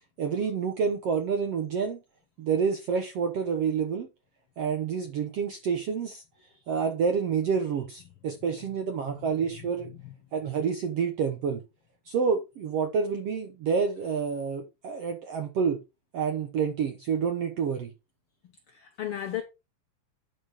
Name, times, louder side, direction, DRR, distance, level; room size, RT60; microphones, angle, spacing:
voice 1, 0.2-2.0 2.4-4.1 4.6-6.2 6.7-9.9 10.3-11.6 12.1-15.8 16.1-17.9, right 6 dB, 65° right, 1.6 m, -28 dB
voice 2, 9.8-10.1 18.7-19.4, left 11 dB, 85° left, 1.2 m, -36 dB
10.0 x 5.1 x 4.8 m
omnidirectional pair, 3.9 m